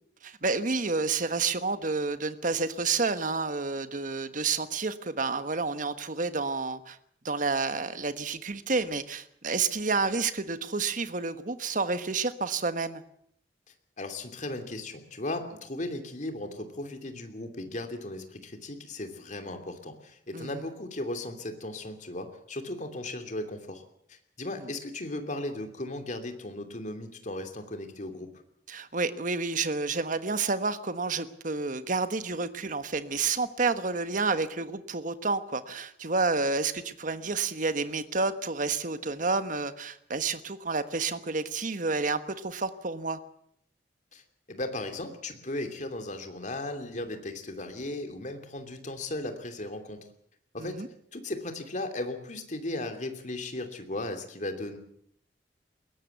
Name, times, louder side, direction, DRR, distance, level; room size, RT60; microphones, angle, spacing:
voice 1, 0.2-7.0 7.2-13.0 20.3-20.6 24.5-24.7 28.7-43.2 50.6-50.9, right 4 dB, 50° right, 11 dB, 1.3 m, -30 dB
voice 2, 14.0-23.8 24.1-28.3 44.1-44.2 44.5-50.0 50.5-50.8 51.1-54.8, left 1 dB, 45° left, 6 dB, 2.9 m, -36 dB
21.0 x 17.5 x 8.1 m, 0.69 s
head